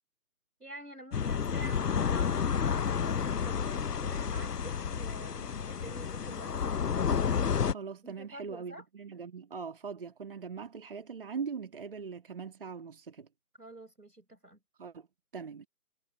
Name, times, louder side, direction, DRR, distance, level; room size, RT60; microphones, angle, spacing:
voice 1, 0.6-6.9 8.0-8.9 13.6-14.6, right 1 dB, 80° right, 6.0 m, -49 dB
sound 1, 1.1-7.7, left 7 dB, 85° left, 0.7 m, -30 dB
voice 2, 7.6-13.3 14.8-15.1 15.3-15.7, right 5 dB, 35° right, 2.1 m, -41 dB
figure-of-eight pair, 150°, 46 cm